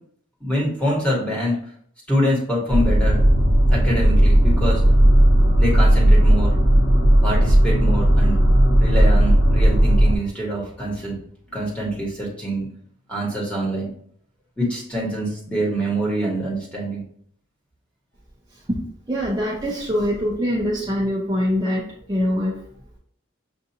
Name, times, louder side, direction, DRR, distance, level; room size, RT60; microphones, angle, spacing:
voice 1, 0.4-1.6 2.1-3.2 3.7-4.8 5.6-6.5 7.2-8.4 8.8-11.2 11.5-12.7 13.1-13.9 14.6-17.0, equal, 5° left, -4 dB, 1.3 m, -25 dB
sound 1, 2.7-10.2, right 1 dB, 65° left, 0.9 m, -15 dB
voice 2, 19.1-22.6, equal, 20° right, -4 dB, 0.5 m, -23 dB
6.7 x 2.5 x 2.7 m, 0.63 s
head